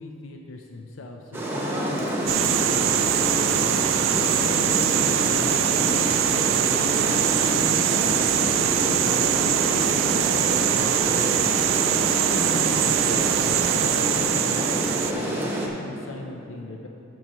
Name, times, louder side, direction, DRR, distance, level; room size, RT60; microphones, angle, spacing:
voice 1, 0.0-3.8 4.4-8.0 8.7-11.6 12.1-16.9, left 3 dB, 75° left, 2 dB, 0.5 m, -38 dB
Rain, 1.3-15.7, equal, 10° right, 1.0 m, -28 dB
sound 1, 2.3-15.1, right 10 dB, 70° right, 0.4 m, -23 dB
14.0 x 6.1 x 3.0 m, 2.9 s
head